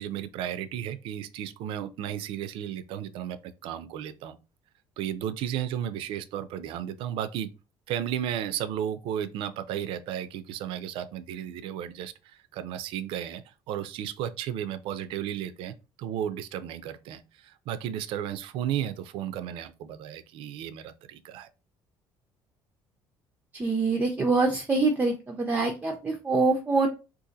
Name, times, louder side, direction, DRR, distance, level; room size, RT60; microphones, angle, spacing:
voice 1, 0.0-4.4 5.0-7.5 7.9-13.4 13.7-21.5, right 10 dB, 75° right, 0.4 m, -34 dB
voice 2, 23.5-26.9, right 3 dB, 20° right, 0.5 m, -25 dB
2.7 x 2.5 x 3.7 m
cardioid pair, 125°, 9 cm